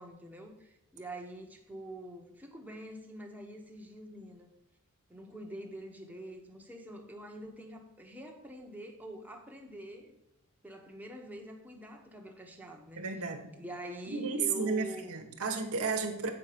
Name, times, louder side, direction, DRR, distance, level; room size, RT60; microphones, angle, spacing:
voice 1, 0.0-4.5 5.1-10.1 10.6-13.2 13.5-15.2, right 1 dB, 5° right, 1 dB, 1.2 m, -45 dB
voice 2, 13.0-13.4 14.1-16.3, right 4 dB, 70° right, 3 dB, 1.2 m, -33 dB
8.5 x 4.8 x 6.8 m, 0.89 s
head